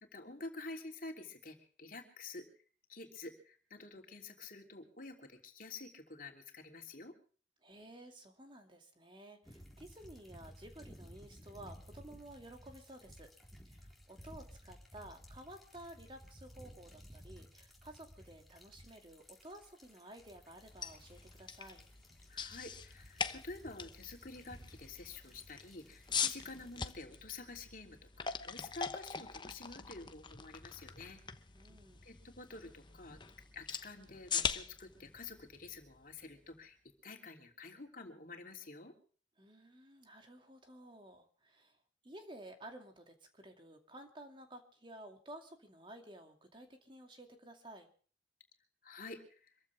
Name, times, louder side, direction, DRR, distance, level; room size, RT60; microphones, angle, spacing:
voice 1, 0.0-2.5 2.9-7.1 22.3-31.2 32.0-33.2 33.5-36.8 37.0-38.9 48.8-49.5, left 3 dB, 50° left, 3 dB, 3.2 m, -49 dB
voice 2, 7.6-13.3 13.6-21.8 31.5-32.1 39.4-41.8 42.0-47.9, right 1 dB, 25° right, 4 dB, 2.4 m, -53 dB
sound 1, 9.4-26.9, equal, ahead, 4.0 m, -57 dB
sound 2, 20.6-36.5, left 6 dB, 25° left, 1.0 m, -43 dB
25.5 x 15.0 x 3.5 m, 0.43 s
head